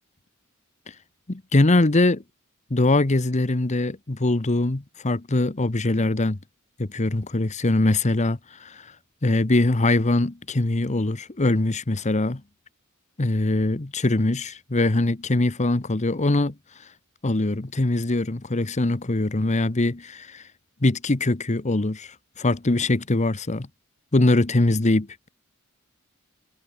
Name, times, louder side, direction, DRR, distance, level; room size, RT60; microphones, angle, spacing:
voice 1, 1.3-2.2 2.7-6.4 6.8-8.8 9.2-12.4 13.2-16.5 17.2-20.4 20.8-22.1 22.4-23.7 24.1-25.3, left 2 dB, 35° left, 1.0 m, -22 dB
head